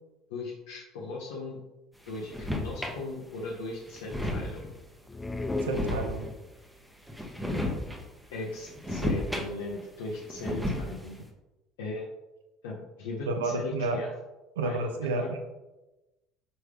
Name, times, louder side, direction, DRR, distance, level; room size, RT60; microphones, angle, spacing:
voice 1, 0.3-1.6 2.0-4.7 8.3-11.2 11.8-12.0 12.6-14.2 14.6-15.3, left 2 dB, 65° left, -4 dB, 0.9 m, -38 dB
sound 1, 2.1-3.0 3.5-3.6 3.9-4.8 5.5-6.5 7.1-8.0 8.4-9.8 10.1-11.1, left 1 dB, 5° right, 1.0 m, -33 dB
sound 2, 5.1-6.7, left 2 dB, 20° left, 0.5 m, -35 dB
voice 2, 5.6-6.3 13.3-14.0 14.6-15.4, right 3 dB, 70° right, 5 dB, 0.6 m, -30 dB
6.3 x 4.6 x 3.3 m, 1.0 s
figure-of-eight pair, 60°, 0 cm